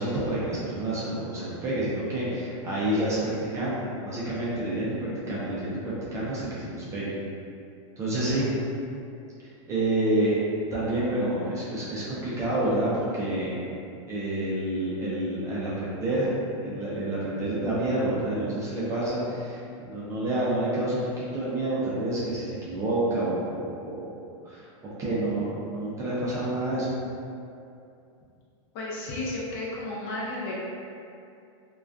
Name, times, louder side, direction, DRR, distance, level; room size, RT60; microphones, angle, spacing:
voice 1, 0.0-7.2 8.0-8.5 9.7-10.4 10.7-13.7 14.1-16.3 16.6-24.1 24.4-26.9, right 1 dB, 20° right, -8 dB, 0.4 m, -28 dB
voice 2, 28.7-30.5, left 2 dB, 50° left, -6 dB, 0.6 m, -33 dB
2.4 x 2.2 x 2.3 m, 2.5 s
supercardioid pair, 145°, 17 cm